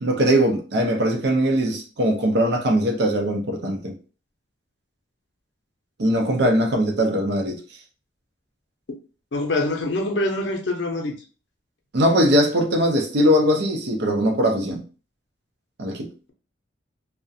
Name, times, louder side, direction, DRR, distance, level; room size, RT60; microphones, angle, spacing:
voice 1, 0.0-4.0 6.0-7.6 11.9-14.8 15.8-16.1, equal, 60° right, 0.5 m, -20 dB
voice 2, 9.3-11.2, left 2 dB, 65° left, 0.5 m, -24 dB
2.3 x 2.1 x 2.6 m
head